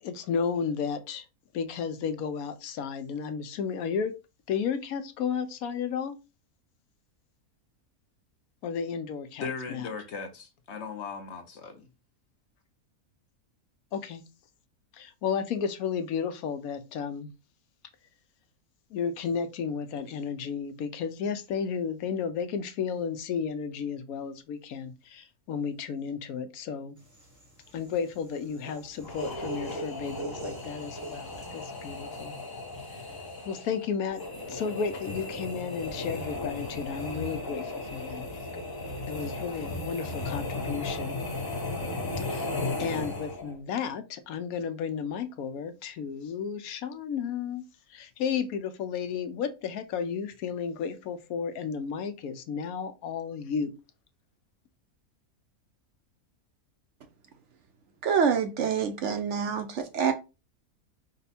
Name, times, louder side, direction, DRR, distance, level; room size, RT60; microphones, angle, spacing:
voice 1, 0.0-1.2 1.5-4.1 4.5-6.2 8.6-9.9 13.9-14.2 14.9-17.3 18.9-27.0 27.7-32.3 32.9-33.1 33.4-34.2 34.5-38.3 38.5-38.7 39.1-41.2 42.2-42.5 42.8-47.6 47.9-53.7, left 6 dB, 80° left, 1.1 m, -33 dB
voice 2, 9.4-11.9, left 5 dB, 55° left, 1.0 m, -38 dB
sound 1, 27.1-31.6, right 2 dB, 15° right, 0.8 m, -41 dB
sound 2, 29.0-43.6, left 2 dB, 20° left, 0.6 m, -36 dB
voice 3, 58.0-60.1, right 6 dB, 65° right, 0.8 m, -26 dB
5.2 x 2.2 x 4.1 m
omnidirectional pair, 1.6 m